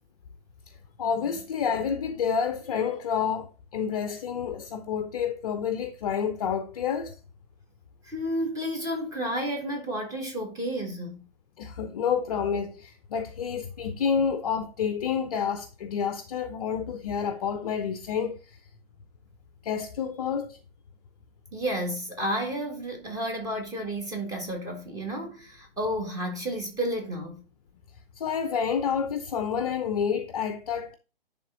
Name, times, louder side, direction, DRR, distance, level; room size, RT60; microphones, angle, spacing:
voice 1, 1.0-7.1 11.6-18.6 19.6-20.6 28.2-30.9, left 7 dB, 40° left, 0.7 m, -29 dB
voice 2, 8.0-11.2 21.5-27.4, equal, 10° right, 1.9 m, -31 dB
10.5 x 3.6 x 3.8 m
figure-of-eight pair, 125°, 30 cm